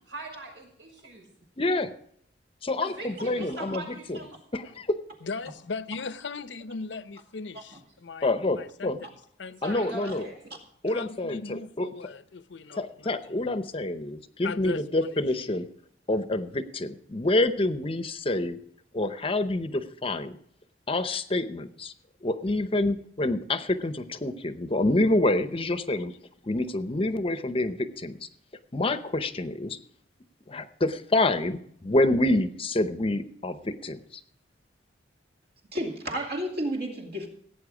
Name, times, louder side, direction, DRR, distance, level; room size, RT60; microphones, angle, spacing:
voice 1, 0.1-1.3 2.8-4.4 9.6-10.4, right 2 dB, 85° right, 6.0 m, -40 dB
voice 2, 1.6-1.9 2.6-4.2 4.5-5.0 8.2-9.0 9.6-10.3 10.8-11.9 12.8-15.7 16.1-18.6 18.9-20.4 20.9-21.9 22.2-26.1 26.4-28.3 28.7-29.8 30.5-34.0, left 2 dB, 30° left, 0.7 m, -27 dB
voice 3, 3.3-3.8 4.1-4.2 10.1-10.2 35.7-37.3, equal, 55° right, 2.3 m, -32 dB
voice 4, 5.2-10.1 10.9-13.6 14.4-15.1, left 4 dB, 65° left, 0.7 m, -39 dB
16.5 x 9.0 x 4.9 m
head